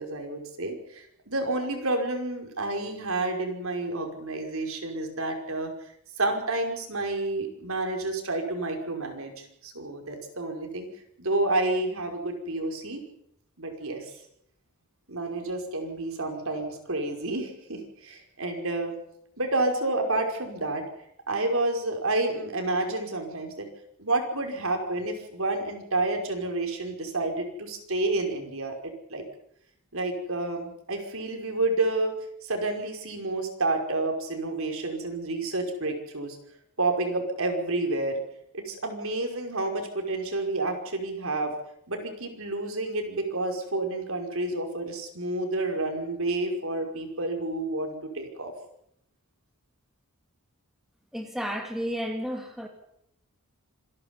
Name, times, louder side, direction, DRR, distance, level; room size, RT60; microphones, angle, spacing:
voice 1, 0.0-5.7 6.2-10.9 11.2-13.0 13.6-14.1 15.1-18.9 19.4-20.8 21.3-23.7 24.0-29.2 29.9-32.1 32.4-36.4 36.8-38.2 38.5-41.5 41.9-48.5, right 2 dB, 65° right, 3 dB, 5.5 m, -29 dB
voice 2, 51.1-52.7, equal, ahead, 3 dB, 2.8 m, -32 dB
27.5 x 12.0 x 9.9 m, 0.75 s
head